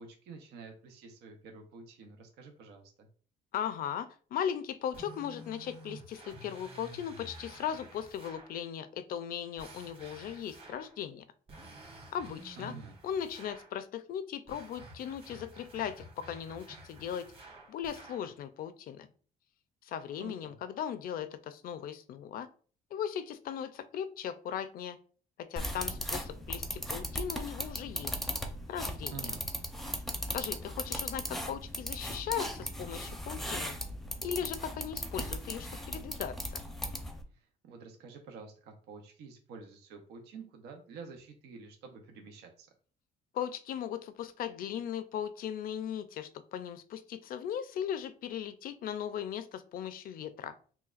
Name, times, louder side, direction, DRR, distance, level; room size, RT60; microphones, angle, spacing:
voice 1, 0.0-3.1 12.6-12.9 20.2-20.5 29.1-29.4 37.3-42.7, right 4 dB, 80° right, 3 dB, 0.8 m, -49 dB
voice 2, 3.5-11.2 12.1-12.7 13.0-17.3 17.7-19.1 19.8-22.5 22.9-25.0 25.4-28.1 28.7-29.2 30.3-33.7 34.2-36.6 43.3-50.5, left 9 dB, 60° left, 12 dB, 0.5 m, -38 dB
sound 1, 4.9-8.6 9.6-11.0 11.5-13.8 14.5-18.3, right 1 dB, 35° right, 1.5 m, -51 dB
sound 2, 25.6-37.2, equal, ahead, 0.6 m, -38 dB
5.7 x 2.3 x 2.4 m, 0.42 s
cardioid pair, 110°, 17 cm